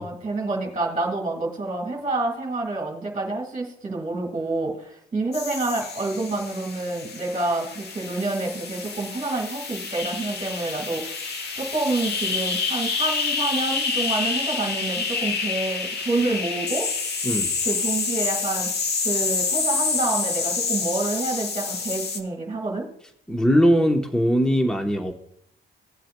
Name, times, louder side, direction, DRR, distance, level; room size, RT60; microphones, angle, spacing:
voice 1, 0.0-11.2 11.6-16.9 17.7-18.7 19.0-22.9, right 2 dB, 30° right, 0 dB, 2.1 m, -28 dB
sound 1, 5.3-22.2, left 4 dB, 55° left, 1.2 m, -28 dB
voice 2, 23.3-25.1, equal, 5° left, 4 dB, 1.0 m, -20 dB
16.5 x 7.5 x 2.2 m, 0.68 s
cardioid pair, 90°, 20 cm